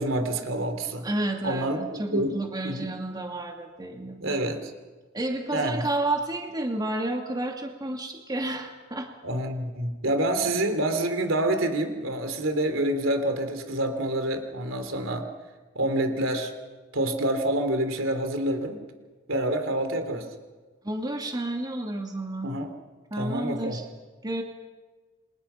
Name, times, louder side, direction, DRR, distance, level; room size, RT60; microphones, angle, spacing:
voice 1, 0.0-1.1 1.4-2.4 2.6-2.9 4.2-4.7 5.5-5.8 9.2-15.3 15.7-16.5 16.9-18.8 19.3-20.3 22.4-22.7 23.2-23.8, right 1 dB, 75° right, 7 dB, 3.3 m, -27 dB
voice 2, 1.0-4.4 5.1-9.1 20.8-22.5 23.1-23.8 24.2-24.4, right 2 dB, 20° right, 2 dB, 2.6 m, -31 dB
29.0 x 25.5 x 5.8 m, 1.3 s
head